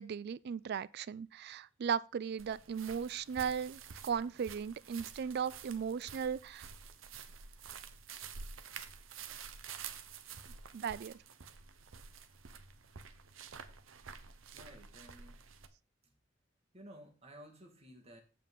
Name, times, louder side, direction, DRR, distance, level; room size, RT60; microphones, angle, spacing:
voice 1, 0.0-6.7 10.7-11.1, right 7 dB, 55° right, 0.3 m, -37 dB
sound 1, 2.4-15.7, right 6 dB, 75° right, 0.8 m, -50 dB
voice 2, 14.5-15.4 16.0-16.1 16.7-18.2, equal, 30° right, 1.8 m, -54 dB
8.3 x 7.5 x 3.7 m
head